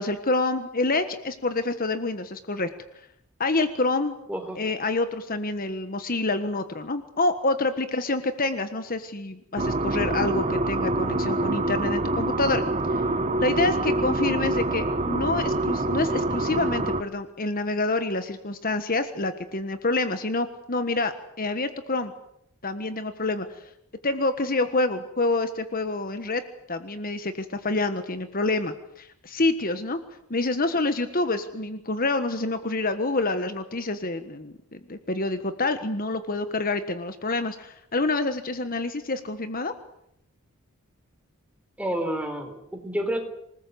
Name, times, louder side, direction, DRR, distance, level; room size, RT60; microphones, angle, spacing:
voice 1, 0.0-2.7 3.4-4.2 4.6-12.6 12.9-13.0 13.4-22.1 22.6-23.7 24.0-26.4 26.7-30.0 30.3-39.7, left 2 dB, 40° left, 10 dB, 1.4 m, -27 dB
voice 2, 4.3-4.6 41.8-43.2, right 1 dB, 5° right, 5 dB, 4.0 m, -29 dB
sound 1, 9.6-17.0, right 2 dB, 30° right, 1.4 m, -26 dB
27.5 x 19.5 x 8.0 m, 0.76 s
head